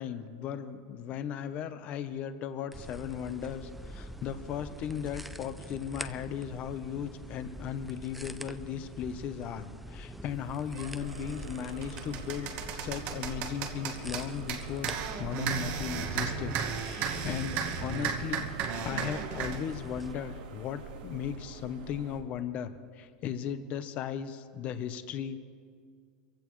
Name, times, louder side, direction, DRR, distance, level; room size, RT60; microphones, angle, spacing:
voice 1, 0.0-9.6 9.9-12.5 12.8-14.9 15.2-18.5 18.8-22.7 23.0-25.4, left 8 dB, 35° left, 11 dB, 0.8 m, -37 dB
sound 1, 2.7-20.1, right 1 dB, ahead, 0.4 m, -45 dB
sound 2, 10.7-10.9 11.4-19.6, right 7 dB, 40° right, 1.2 m, -35 dB
sound 3, 11.0-22.2, right 3 dB, 90° right, 1.8 m, -45 dB
24.5 x 15.5 x 3.1 m, 2.1 s
supercardioid pair, 165°, 4 cm